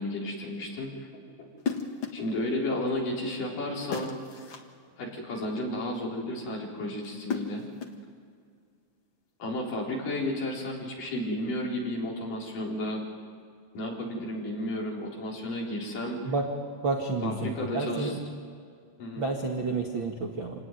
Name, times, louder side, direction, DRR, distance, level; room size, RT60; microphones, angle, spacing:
voice 1, 0.0-1.5 2.1-4.2 5.0-7.6 9.4-13.0 13.7-16.3 17.2-18.2 19.0-19.3, left 1 dB, 50° left, -2 dB, 5.5 m, -33 dB
sound 1, 1.6-2.3 3.9-4.7 7.0-8.1, left 5 dB, 90° left, 1.1 m, -35 dB
voice 2, 16.8-18.2 19.2-20.5, right 3 dB, 50° right, 1 dB, 1.4 m, -30 dB
27.0 x 18.5 x 9.4 m, 2.2 s
omnidirectional pair, 5.2 m